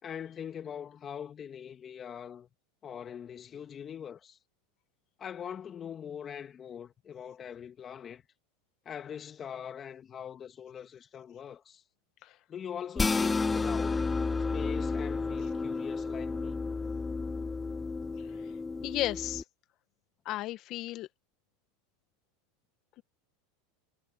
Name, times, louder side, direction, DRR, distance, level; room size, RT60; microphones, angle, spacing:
voice 1, 0.0-2.5 2.8-4.4 5.2-8.2 8.8-11.8 12.5-14.0 14.5-16.6, left 8 dB, 30° left, 3.0 m, -42 dB
sound 1, 13.0-19.4, left 4 dB, 15° left, 0.6 m, -31 dB
voice 2, 18.8-19.4 20.3-21.1, left 15 dB, 50° left, 1.9 m, -34 dB
hypercardioid pair, 105°, 0 cm